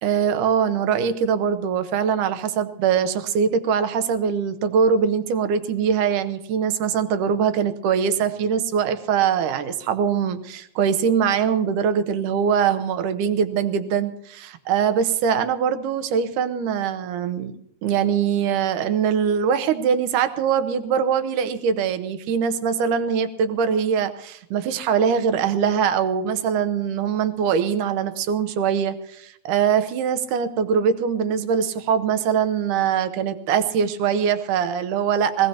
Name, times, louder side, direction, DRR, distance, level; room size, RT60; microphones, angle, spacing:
voice 1, 0.0-17.6 17.8-35.5, right 7 dB, 70° right, 10 dB, 2.4 m, -22 dB
23.5 x 18.0 x 2.9 m, 0.73 s
omnidirectional pair, 4.0 m